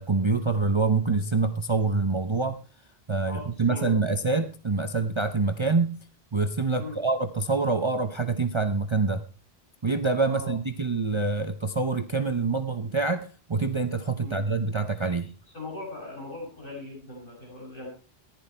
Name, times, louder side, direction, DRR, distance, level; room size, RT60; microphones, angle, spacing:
voice 1, 0.0-2.6 3.1-6.0 6.3-9.2 9.8-15.3, right 3 dB, 30° right, 8 dB, 0.8 m, -26 dB
voice 2, 3.2-3.9 6.8-7.0 10.3-10.5 14.2-14.4 15.5-17.9, left 2 dB, 55° left, -3 dB, 6.6 m, -39 dB
15.0 x 11.0 x 4.4 m, 0.35 s
omnidirectional pair, 1.1 m